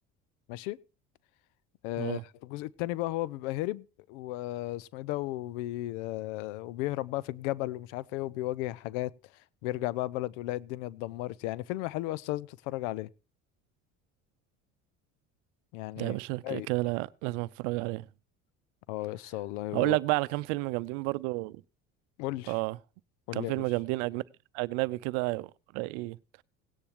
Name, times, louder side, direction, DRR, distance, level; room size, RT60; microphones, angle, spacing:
voice 1, 1.8-9.1 9.6-13.1 15.7-16.1 16.4-16.7 18.9-20.0 22.2-22.5 23.3-23.5, left 17 dB, 75° left, 0.7 m, -34 dB
voice 2, 16.0-18.0 19.7-21.6 22.5-22.8 23.3-24.2 24.5-26.2, right 22 dB, 70° right, 0.7 m, -31 dB
17.5 x 9.9 x 2.9 m
hypercardioid pair, 70°, 37 cm